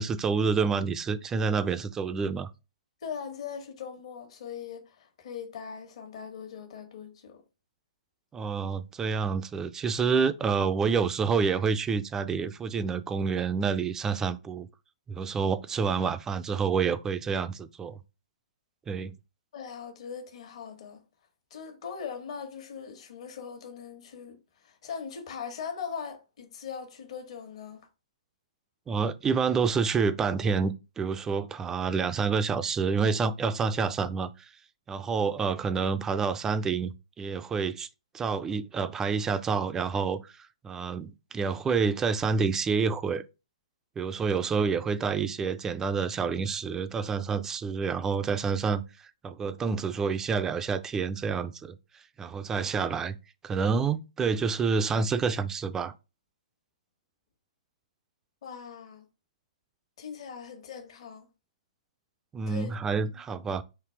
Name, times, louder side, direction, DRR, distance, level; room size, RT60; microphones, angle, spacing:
voice 1, 0.0-2.5 8.3-14.7 15.1-18.0 18.9-19.1 28.9-34.5 34.9-37.9 38.1-43.2 44.0-48.8 49.2-51.8 52.2-53.2 53.4-55.9 62.3-63.6, right 5 dB, 15° right, 0.3 m, -28 dB
voice 2, 3.0-7.4 19.5-21.0 21.5-27.9 58.4-59.0 60.0-61.3 62.5-62.7 63.1-63.2, left 7 dB, 60° left, 1.3 m, -40 dB
3.9 x 2.7 x 4.5 m
hypercardioid pair, 140°, 4 cm